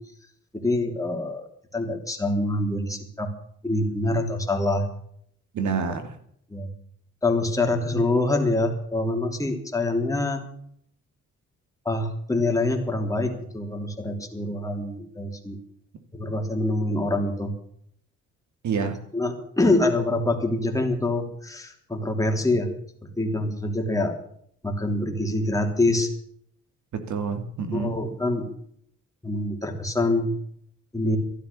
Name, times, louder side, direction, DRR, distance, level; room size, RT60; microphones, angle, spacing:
voice 1, 0.5-3.3 3.6-4.8 5.8-5.9 6.5-6.7 7.2-10.4 11.8-15.6 16.1-17.5 19.1-22.7 23.2-24.1 24.6-26.1 27.7-28.5 29.2-30.3 30.9-31.2, left 2 dB, 10° left, 3.2 m, -25 dB
voice 2, 5.5-6.2 18.6-19.0 26.9-28.0, right 5 dB, 70° right, 2.4 m, -28 dB
13.5 x 11.5 x 6.9 m
cardioid pair, 90°, 30 cm